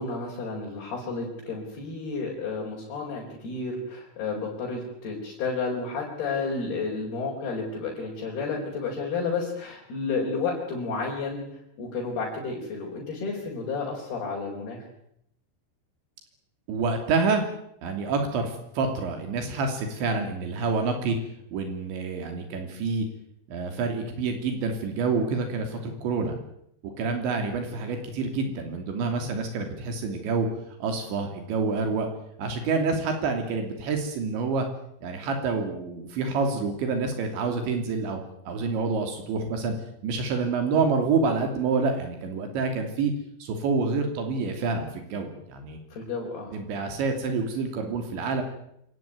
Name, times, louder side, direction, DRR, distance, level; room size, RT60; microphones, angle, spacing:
voice 1, 0.0-14.8 45.9-46.6, left 4 dB, 60° left, -2 dB, 6.4 m, -31 dB
voice 2, 16.7-17.4 17.8-21.2 21.5-23.1 23.5-26.3 27.0-30.5 30.8-32.1 32.4-34.7 35.0-38.2 38.5-39.7 40.0-43.1 43.4-45.8 46.5-48.4, right 4 dB, 80° right, 4 dB, 5.2 m, -27 dB
27.0 x 19.0 x 9.5 m, 0.77 s
omnidirectional pair, 5.1 m